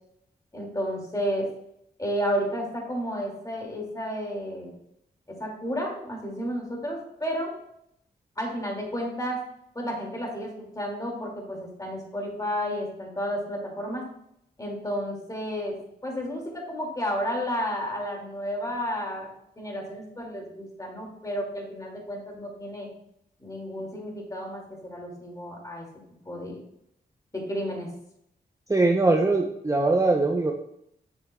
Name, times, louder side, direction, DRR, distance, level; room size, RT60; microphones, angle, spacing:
voice 1, 0.5-1.5 2.0-4.7 5.3-7.5 8.4-9.4 9.7-14.1 14.6-19.3 19.6-22.9 23.4-25.9 26.3-26.6 27.3-27.9, equal, 20° left, 0 dB, 2.2 m, -32 dB
voice 2, 28.7-30.5, right 3 dB, 20° right, 1 dB, 0.6 m, -21 dB
7.1 x 6.6 x 2.2 m, 0.76 s
cardioid pair, 70°, 17 cm